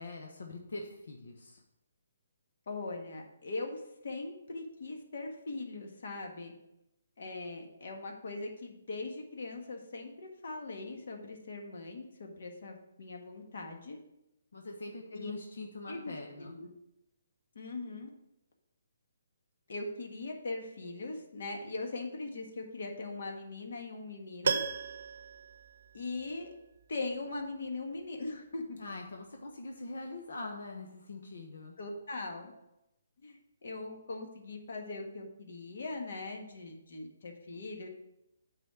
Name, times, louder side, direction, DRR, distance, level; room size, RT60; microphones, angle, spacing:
voice 1, 0.0-1.6 14.5-16.6 28.8-31.7, left 2 dB, 75° left, 1 dB, 1.2 m, -43 dB
voice 2, 2.7-6.5 7.2-14.0 15.1-15.3 15.9-16.7 17.5-18.1 19.7-24.6 25.9-26.5 26.9-28.8 31.8-32.5 33.2-37.9, left 3 dB, 55° left, 2 dB, 1.6 m, -40 dB
Piano, 24.4-26.5 26.8-26.9, right 5 dB, 55° right, 0.7 m, -35 dB
9.0 x 4.2 x 6.1 m, 0.86 s
hypercardioid pair, 175°, 0 cm